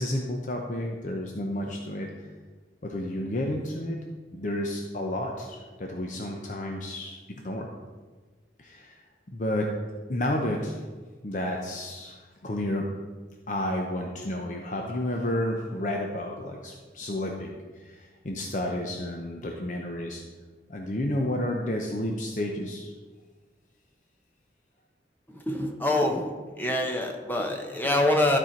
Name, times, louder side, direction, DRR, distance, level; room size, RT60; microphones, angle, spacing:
voice 1, 0.0-2.1 2.8-4.0 4.3-7.2 7.4-7.7 8.6-9.0 9.3-9.7 10.1-10.8 11.2-12.9 13.5-20.2 20.7-22.9, left 1 dB, 45° left, 1 dB, 0.7 m, -31 dB
voice 2, 25.3-26.3 26.6-28.4, left 1 dB, 10° left, 2 dB, 0.8 m, -25 dB
12.5 x 4.4 x 4.4 m, 1.4 s
head